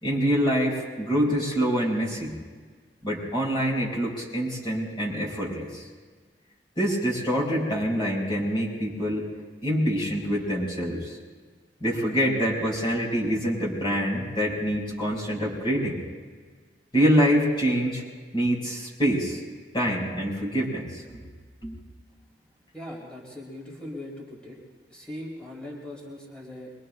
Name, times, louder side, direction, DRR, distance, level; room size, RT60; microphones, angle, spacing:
voice 1, 0.0-2.3 3.0-5.8 6.8-9.3 9.6-11.2 11.8-16.0 16.9-18.0 18.3-19.4 19.7-21.2 21.6-21.8, equal, 30° left, -4 dB, 5.3 m, -25 dB
voice 2, 22.7-24.6 24.9-26.7, left 1 dB, 5° left, -4 dB, 2.8 m, -40 dB
24.5 x 23.0 x 2.2 m, 1.5 s
head